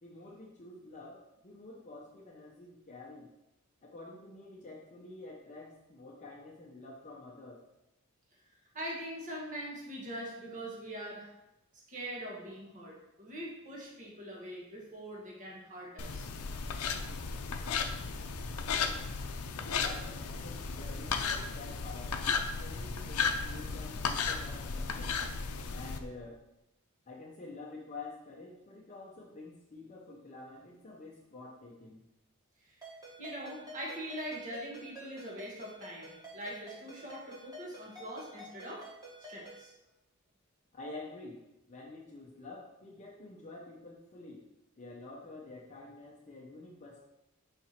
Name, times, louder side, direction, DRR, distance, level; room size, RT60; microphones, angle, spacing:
voice 1, 0.0-3.3 3.8-7.6 19.8-22.2 22.6-25.2 25.7-26.4 27.1-32.0 40.7-41.4 41.7-44.5 44.8-47.0, left 2 dB, 35° left, -3 dB, 0.7 m, -48 dB
voice 2, 8.7-11.3 11.9-16.3 32.7-32.8 33.2-38.9 39.3-39.7, equal, 35° right, -3 dB, 1.4 m, -42 dB
sound 1, 16.0-26.0, left 5 dB, 90° left, 0.5 m, -35 dB
Ringtone, 32.8-39.7, right 1 dB, 15° right, 1.7 m, -50 dB
5.8 x 4.5 x 4.3 m, 0.93 s
head